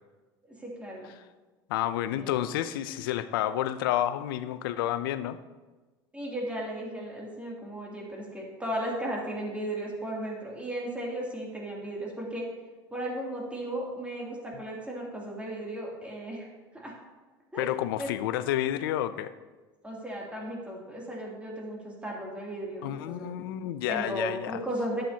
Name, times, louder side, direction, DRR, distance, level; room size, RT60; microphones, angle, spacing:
voice 1, 0.5-1.1 2.1-2.4 6.1-12.4 12.9-16.5 16.7-16.9 17.5-18.1 19.8-23.3 23.9-25.0, right 1 dB, 10° right, -3 dB, 2.7 m, -35 dB
voice 2, 1.7-5.4 17.6-19.3 22.8-24.6, left 12 dB, 85° left, 13 dB, 0.5 m, -30 dB
11.5 x 7.7 x 2.8 m, 1.2 s
supercardioid pair, 90°, 11 cm